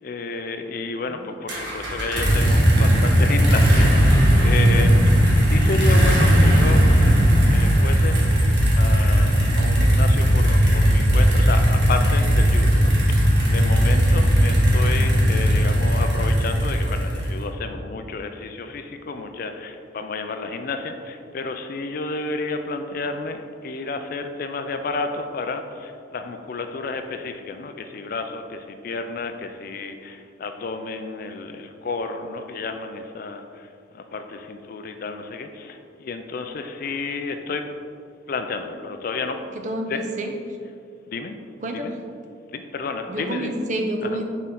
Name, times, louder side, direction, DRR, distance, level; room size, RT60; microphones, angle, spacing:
voice 1, 0.0-8.4 8.7-33.7 33.9-37.7 38.3-39.4 39.9-40.0 41.1-41.4 41.7-41.9 42.5-43.5 44.0-44.2, left 3 dB, 50° left, 7 dB, 0.3 m, -31 dB
sound 1, 1.5-17.4, equal, 65° right, 1.3 m, -17 dB
voice 2, 39.5-40.3 41.6-41.9 43.1-44.2, right 1 dB, 40° right, 4 dB, 0.5 m, -29 dB
6.2 x 4.1 x 3.8 m, 2.3 s
head